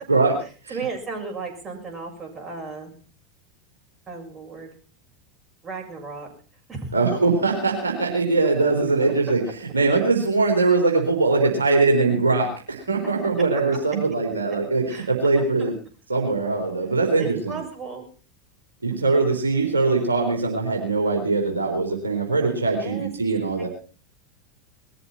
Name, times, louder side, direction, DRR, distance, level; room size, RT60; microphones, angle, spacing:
voice 1, 0.7-3.0 4.1-4.7 5.6-6.3 6.7-6.9 14.9-15.1 15.4-15.7 17.2-18.0 19.1-19.2 22.7-23.1, right 4 dB, 25° right, 1 dB, 6.8 m, -34 dB
voice 2, 6.9-15.7 16.1-17.6 18.8-23.7, right 3 dB, 80° right, 1 dB, 3.9 m, -21 dB
20.5 x 14.0 x 4.4 m, 0.40 s
figure-of-eight pair, 85°, 0 cm